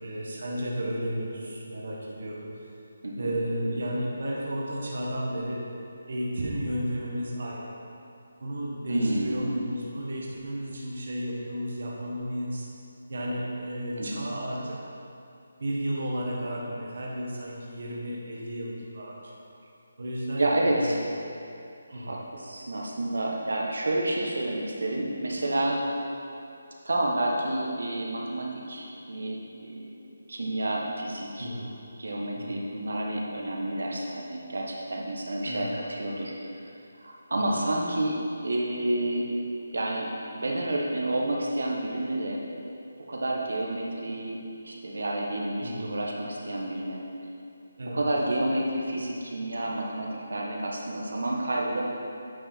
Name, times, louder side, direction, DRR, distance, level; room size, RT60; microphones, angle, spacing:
voice 1, 0.0-2.5 3.2-5.7 6.1-7.7 8.4-12.6 13.1-14.8 15.6-19.4 20.0-21.0 21.9-22.2 31.4-31.8 32.3-32.7 35.4-35.7 45.6-46.0 47.8-48.1, equal, 45° right, -3 dB, 1.2 m, -33 dB
voice 2, 8.9-9.5 14.0-14.3 20.4-21.0 21.9-25.8 26.8-29.9 30.3-31.5 32.0-36.3 37.0-39.3 39.7-42.4 43.1-44.4 44.6-47.0 47.9-51.8, right 1 dB, 85° right, -2 dB, 1.2 m, -29 dB
8.9 x 4.8 x 4.4 m, 2.6 s
hypercardioid pair, 180°, 0 cm